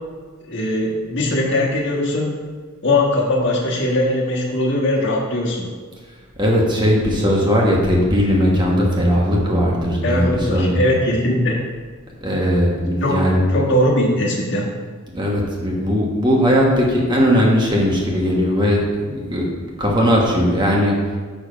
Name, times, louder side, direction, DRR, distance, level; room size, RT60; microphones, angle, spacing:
voice 1, 0.5-2.4 2.8-5.7 10.0-11.6 13.0-13.2 13.5-14.7, left 1 dB, 55° left, -2 dB, 1.5 m, -20 dB
voice 2, 6.4-10.9 12.2-13.4 15.1-20.9, equal, 20° right, -3 dB, 1.3 m, -18 dB
6.9 x 6.0 x 5.1 m, 1.5 s
head